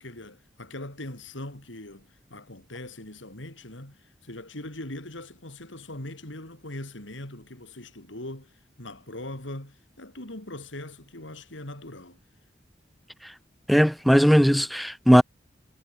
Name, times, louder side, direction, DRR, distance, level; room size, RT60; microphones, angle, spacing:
voice 1, 0.0-12.2, left 1 dB, 90° left, 4.7 m, -41 dB
voice 2, 13.7-15.2, equal, ahead, 0.9 m, -18 dB
head